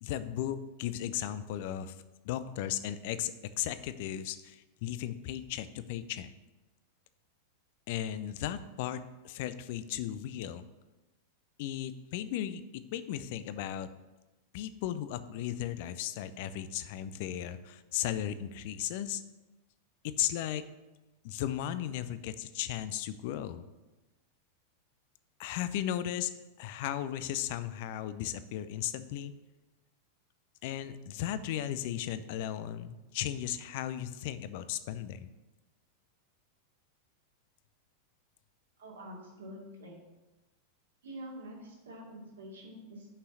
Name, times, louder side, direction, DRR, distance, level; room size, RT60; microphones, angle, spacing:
voice 1, 0.0-1.9 2.2-6.3 7.9-10.7 11.6-13.9 14.5-19.2 20.0-20.6 21.2-23.6 25.4-26.3 26.6-29.3 30.6-35.3, left 11 dB, 50° left, 13 dB, 0.5 m, -36 dB
voice 2, 38.8-40.0 41.0-43.1, equal, 65° right, -2 dB, 2.4 m, -46 dB
6.6 x 5.6 x 7.1 m, 1.1 s
figure-of-eight pair, 90°, 0 cm